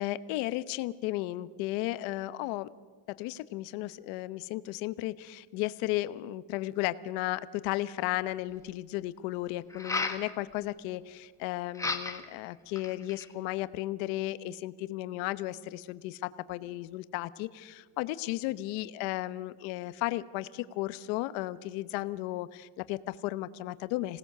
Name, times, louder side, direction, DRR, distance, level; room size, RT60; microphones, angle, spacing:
voice 1, 0.0-2.7 3.1-24.2, left 16 dB, 80° left, 14 dB, 1.0 m, -34 dB
sound 1, 9.7-10.2 11.7-12.3 12.8-13.3, left 3 dB, 5° left, 1.3 m, -33 dB
26.5 x 18.5 x 6.7 m, 1.5 s
cardioid pair, 160°, 45 cm